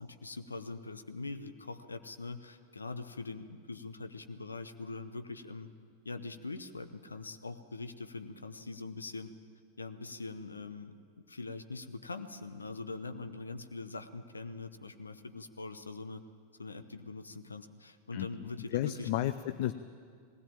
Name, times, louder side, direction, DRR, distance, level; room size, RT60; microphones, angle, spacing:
voice 1, 0.0-5.7 6.0-9.3 9.8-10.9 11.3-16.2 16.6-19.1, left 3 dB, 75° left, 10 dB, 0.9 m, -43 dB
voice 2, 18.1-19.7, left 13 dB, 50° left, 12 dB, 0.6 m, -33 dB
19.5 x 17.0 x 8.8 m, 2.1 s
figure-of-eight pair, 90°, 0 cm